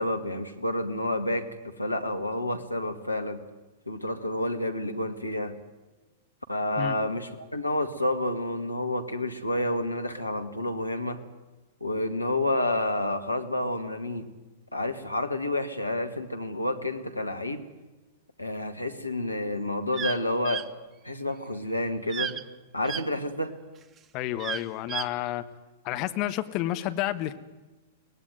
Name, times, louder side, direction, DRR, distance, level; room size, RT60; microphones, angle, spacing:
voice 1, 0.0-3.4 3.9-5.6 6.5-11.2 11.8-14.3 14.7-17.7 18.4-20.6 21.0-22.3 22.7-23.5, left 1 dB, 90° left, 2.2 m, -29 dB
sound 1, 19.9-20.2 20.4-20.6 22.1-22.4 22.8-23.0 24.4-25.1, right 7 dB, 25° right, 0.9 m, -32 dB
voice 2, 24.1-25.4 25.8-27.4, left 14 dB, 40° left, 1.5 m, -30 dB
23.5 x 19.0 x 9.4 m
figure-of-eight pair, 100°, 0 cm